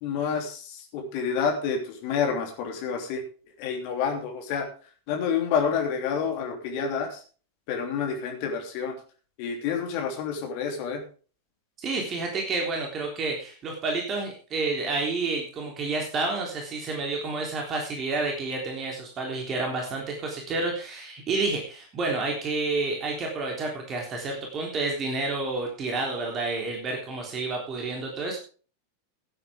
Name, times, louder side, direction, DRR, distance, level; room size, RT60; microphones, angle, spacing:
voice 1, 0.0-3.2 3.6-4.7 5.1-7.2 7.7-8.9 9.4-11.0, left 6 dB, 45° left, 3 dB, 3.0 m, -28 dB
voice 2, 11.8-28.4, right 3 dB, 30° right, 1 dB, 3.4 m, -29 dB
17.0 x 9.1 x 3.6 m, 0.38 s
figure-of-eight pair, 90°, 0 cm